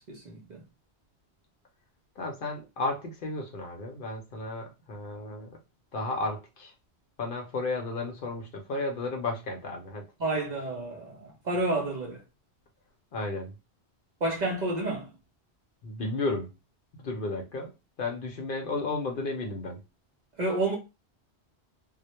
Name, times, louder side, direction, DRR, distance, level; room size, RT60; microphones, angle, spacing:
voice 1, 0.1-0.6 10.2-12.2 14.2-15.1 20.4-20.7, right 2 dB, 50° right, 0.6 m, -30 dB
voice 2, 2.2-5.6 5.9-6.7 7.2-10.0 13.1-13.5 15.8-16.5 17.0-17.7 18.0-19.8, left 2 dB, 60° left, 0.7 m, -33 dB
2.1 x 2.1 x 2.8 m
omnidirectional pair, 1.1 m